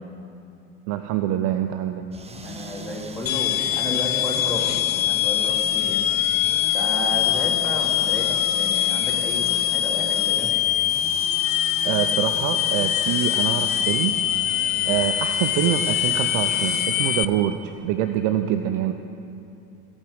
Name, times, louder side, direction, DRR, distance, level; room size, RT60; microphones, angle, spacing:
voice 1, 0.9-2.0 11.8-14.2 14.9-18.9, right 11 dB, 50° right, 8 dB, 0.7 m, -25 dB
sound 1, 2.1-16.9, right 3 dB, 15° right, 0.9 m, -40 dB
voice 2, 2.4-6.0 6.7-10.5 14.7-15.0, left 1 dB, 5° left, -5 dB, 3.1 m, -32 dB
sound 2, 3.3-17.3, left 11 dB, 80° left, 0.6 m, -23 dB
16.0 x 8.8 x 6.6 m, 2.8 s
figure-of-eight pair, 65°, 40 cm